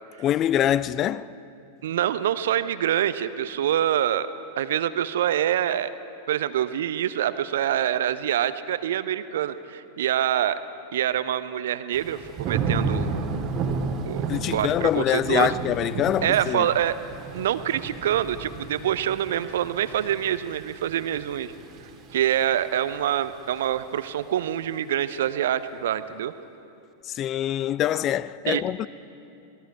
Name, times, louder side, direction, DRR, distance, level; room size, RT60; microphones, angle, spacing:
voice 1, 0.2-1.3 14.3-16.7 27.1-28.9, left 11 dB, 30° left, 0.4 m, -24 dB
voice 2, 1.8-4.3 4.6-5.9 6.3-10.6 10.9-13.2 14.1-15.6 16.2-17.0 17.3-21.5 22.1-26.3 28.5-28.6, right 11 dB, 60° right, 0.8 m, -25 dB
Thunder / Rain, 11.9-22.9 23.3-23.7, right 4 dB, 35° right, 1.7 m, -32 dB
27.5 x 20.0 x 4.7 m
figure-of-eight pair, 90°, 0 cm